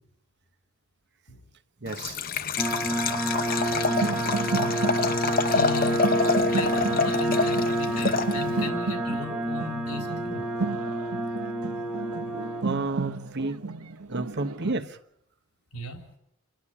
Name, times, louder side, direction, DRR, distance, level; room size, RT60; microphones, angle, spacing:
voice 1, 1.8-2.2 12.6-13.6 14.1-15.0, right 3 dB, 50° right, 1.2 m, -31 dB
Liquid, 1.9-8.7, left 4 dB, 40° left, 0.8 m, -27 dB
sound 1, 2.6-12.6, right 1 dB, 5° right, 1.1 m, -28 dB
sound 2, 3.7-14.7, right 3 dB, 85° right, 0.9 m, -33 dB
voice 2, 5.4-6.0 6.5-10.4 15.7-16.0, left 5 dB, 90° left, 3.9 m, -37 dB
28.5 x 11.5 x 9.9 m
head